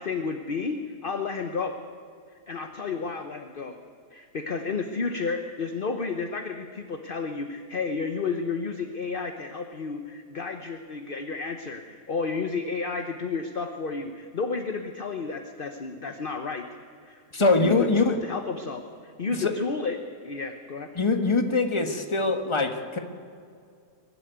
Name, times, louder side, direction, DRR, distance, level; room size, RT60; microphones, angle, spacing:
voice 1, 0.0-1.8 2.5-3.8 4.1-16.6 17.0-20.9, left 4 dB, 40° left, 6 dB, 1.0 m, -32 dB
voice 2, 17.3-18.1 19.4-19.5 20.9-23.0, left 3 dB, 20° left, 5 dB, 1.4 m, -23 dB
23.0 x 12.5 x 9.5 m, 2.3 s
omnidirectional pair, 1.8 m